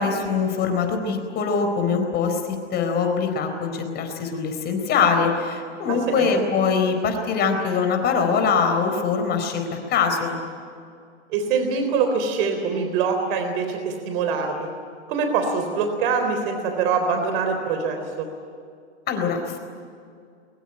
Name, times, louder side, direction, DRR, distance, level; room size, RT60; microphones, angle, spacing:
voice 1, 0.0-2.4 2.7-10.4 19.1-19.6, left 5 dB, 30° left, 5 dB, 4.3 m, -23 dB
voice 2, 5.9-6.3 11.3-14.7 15.1-18.3, right 5 dB, 50° right, 5 dB, 3.9 m, -24 dB
23.0 x 21.5 x 10.0 m, 2.3 s
hypercardioid pair, 130°, 35 cm